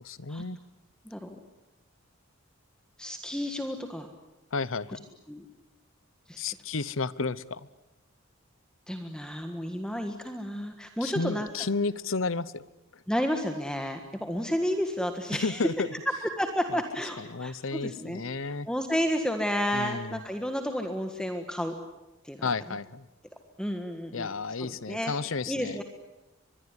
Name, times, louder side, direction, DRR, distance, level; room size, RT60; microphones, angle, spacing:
voice 1, 0.0-0.6 4.5-5.0 6.4-7.7 11.0-12.6 12.9-13.0 15.3-15.9 16.7-16.8 17.2-18.7 19.7-20.2 22.4-23.1 24.1-25.8, left 4 dB, 75° left, 19 dB, 0.9 m, -32 dB
voice 2, 1.0-1.4 3.0-4.1 5.3-5.4 6.3-6.4 8.9-11.5 13.1-15.6 16.2-21.7 22.2-22.5 23.6-24.3 24.6-25.1 25.5-25.8, equal, 5° left, 5 dB, 1.6 m, -31 dB
24.0 x 22.0 x 9.8 m, 1.0 s
head